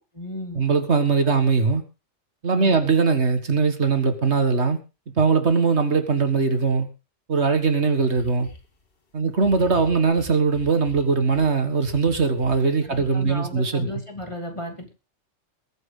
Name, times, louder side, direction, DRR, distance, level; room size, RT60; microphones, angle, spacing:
voice 1, 0.0-0.6 2.5-2.8 9.2-9.3 12.8-14.9, left 1 dB, 25° left, 3 dB, 2.9 m, -35 dB
voice 2, 0.6-1.8 2.4-4.8 5.2-6.9 7.3-8.5 9.1-13.9, right 4 dB, 65° right, 8 dB, 2.0 m, -21 dB
sound 1, 7.5-7.6 8.1-8.7 9.3-11.5 11.8-13.3, left 3 dB, 50° left, 2.0 m, -42 dB
21.5 x 9.2 x 3.9 m, 0.30 s
omnidirectional pair, 1.2 m